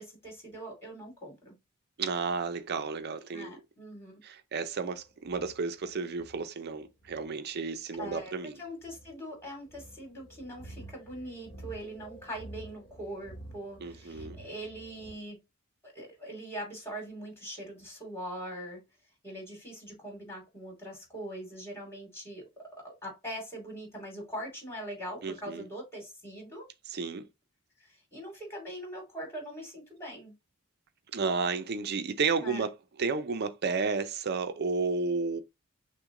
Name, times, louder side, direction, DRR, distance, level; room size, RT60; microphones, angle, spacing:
voice 1, 0.0-1.5 3.3-4.2 8.0-8.3 8.6-15.4 15.8-18.8 19.2-22.4 22.7-26.7 27.8-30.3 32.4-32.7, equal, 10° left, 2.5 m, -42 dB
voice 2, 2.0-3.5 4.2-8.5 13.8-14.4 25.2-25.6 26.9-27.3 31.1-35.4, right 4 dB, 50° right, 0.5 m, -32 dB
sound 1, 4.7-15.1, right 1 dB, 40° left, 1.0 m, -50 dB
6.0 x 2.2 x 3.7 m
head